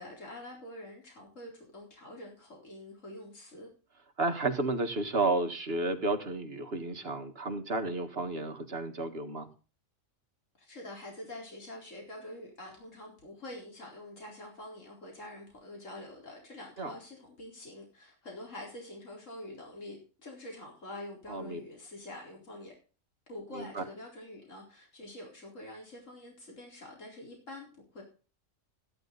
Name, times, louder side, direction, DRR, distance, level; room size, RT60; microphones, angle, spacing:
voice 1, 0.0-3.7 10.6-22.7 23.3-28.0, left 1 dB, 70° left, 0 dB, 4.6 m, -46 dB
voice 2, 4.2-9.5 16.8-16.9 21.3-21.6 23.5-23.8, right 2 dB, 50° right, 7 dB, 2.0 m, -32 dB
15.0 x 11.5 x 4.0 m, 0.35 s
omnidirectional pair, 1.4 m